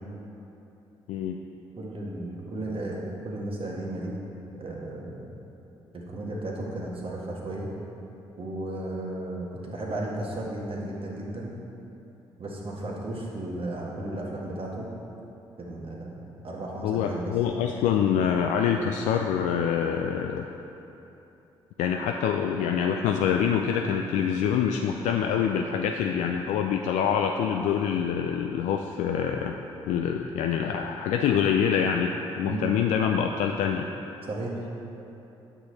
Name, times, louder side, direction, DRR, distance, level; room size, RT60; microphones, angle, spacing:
voice 1, 1.1-1.4 16.8-20.5 21.8-29.6 29.9-33.9, left 8 dB, 65° left, 3 dB, 0.4 m, -25 dB
voice 2, 1.8-4.2 4.5-5.3 5.9-7.7 8.4-11.5 12.4-14.9 15.6-17.3 32.4-32.7 34.3-34.5, right 1 dB, 40° right, -2 dB, 1.7 m, -34 dB
9.0 x 6.3 x 4.0 m, 3.0 s
figure-of-eight pair, 40°, 14 cm